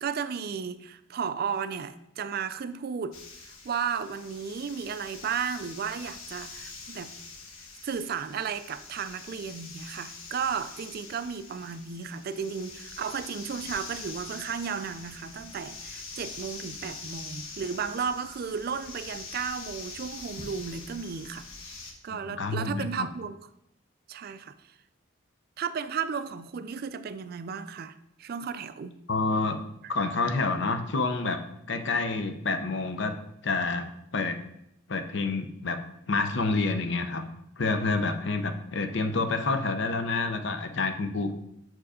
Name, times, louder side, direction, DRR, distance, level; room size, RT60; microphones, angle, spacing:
voice 1, 0.0-7.1 7.8-23.4 24.1-24.5 25.6-29.0 29.8-29.9, right 6 dB, 45° right, 12 dB, 0.3 m, -34 dB
sound 1, 3.1-21.9, left 4 dB, 90° left, 1.2 m, -44 dB
voice 2, 22.1-23.1 29.1-29.6 29.9-31.4 31.7-33.1 33.4-34.4 34.9-35.8 36.1-37.2 37.6-41.3, left 3 dB, 60° left, 8 dB, 0.7 m, -28 dB
6.2 x 4.6 x 4.9 m, 0.78 s
head